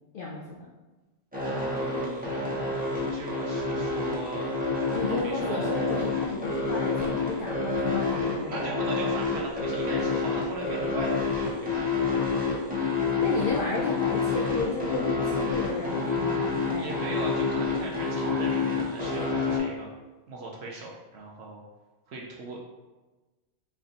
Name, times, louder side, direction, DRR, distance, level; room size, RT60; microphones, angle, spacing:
voice 1, 0.1-0.7 4.9-8.8 13.2-17.0, left 3 dB, 75° left, -3 dB, 0.4 m, -33 dB
sound 1, 1.3-19.6, left 4 dB, 10° right, 0.5 m, -28 dB
voice 2, 1.4-2.8 3.1-4.5 5.1-5.7 8.5-12.5 16.7-19.9 20.3-21.6 22.1-22.6, right 2 dB, 65° right, -2 dB, 0.7 m, -39 dB
3.3 x 2.5 x 3.9 m, 1.2 s
omnidirectional pair, 1.5 m